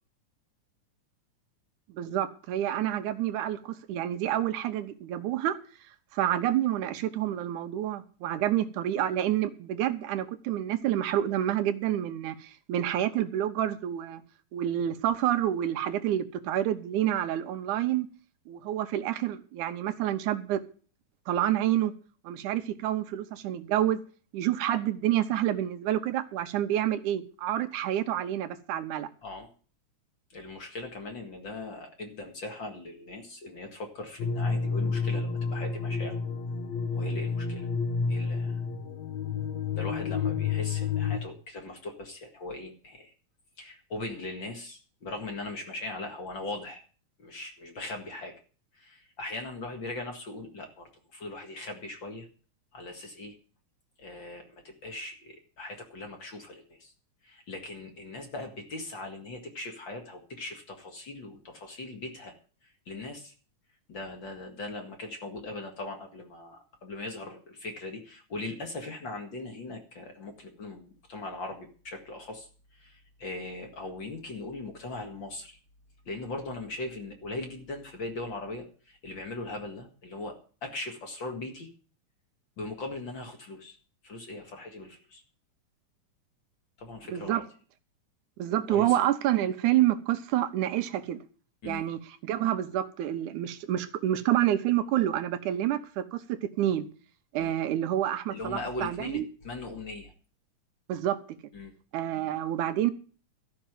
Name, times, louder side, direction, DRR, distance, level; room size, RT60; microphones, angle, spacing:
voice 1, 1.9-5.6 6.1-14.2 14.5-18.1 18.5-20.6 21.3-21.9 22.2-24.0 24.3-29.1 87.1-87.4 88.4-91.2 91.6-96.9 97.3-99.3 100.9-101.2 101.9-102.9, right 12 dB, 80° right, 2.4 m, -28 dB
voice 2, 30.3-36.2 36.9-37.7 38.1-38.6 39.7-43.1 43.6-46.8 47.2-48.3 48.7-52.3 52.7-53.4 54.0-56.9 57.2-62.3 62.6-63.3 63.9-75.6 76.1-81.7 82.6-83.8 84.0-85.2 86.8-87.4 88.7-89.0 91.6-91.8 97.4-97.5 98.3-100.1 101.5-101.7 102.1-102.3, left 2 dB, 40° left, 2.3 m, -40 dB
sound 1, 34.2-41.2, left 5 dB, 65° left, 2.6 m, -30 dB
13.0 x 5.9 x 9.0 m
omnidirectional pair, 3.5 m